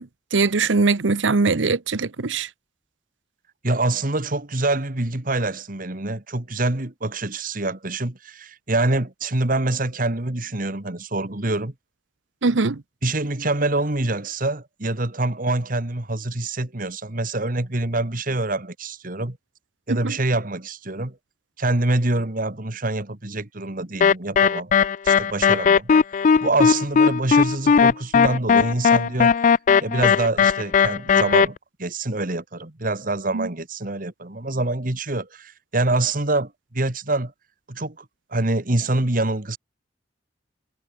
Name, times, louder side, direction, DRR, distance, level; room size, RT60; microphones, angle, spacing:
voice 1, 0.0-2.5 12.4-12.8 19.9-20.1 33.3-33.5, right 4 dB, 85° right, 0.9 m, -21 dB
voice 2, 3.6-11.7 12.5-12.6 13.0-19.4 19.9-21.2 21.6-24.7 25.0-25.9 26.4-29.5 29.8-37.3 37.7-38.1 38.3-39.6, right 2 dB, 45° right, 2.0 m, -25 dB
sound 1, 24.0-31.5, left 6 dB, 45° left, 0.3 m, -17 dB
head